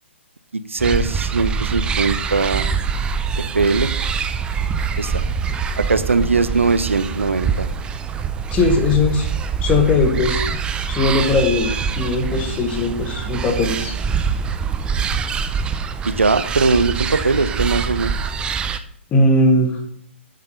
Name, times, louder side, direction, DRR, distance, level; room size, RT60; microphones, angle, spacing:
voice 1, 0.5-2.6 3.4-3.9 5.0-5.1 5.8-7.7 16.0-18.1, right 4 dB, 80° right, 13 dB, 0.7 m, -20 dB
sound 1, 0.8-18.8, right 6 dB, 15° right, 0.5 m, -24 dB
voice 2, 8.5-9.3 9.6-10.4 10.9-13.9 19.1-19.8, left 2 dB, 20° left, 3 dB, 1.6 m, -18 dB
7.5 x 7.3 x 5.6 m, 0.65 s
figure-of-eight pair, 125°, 7 cm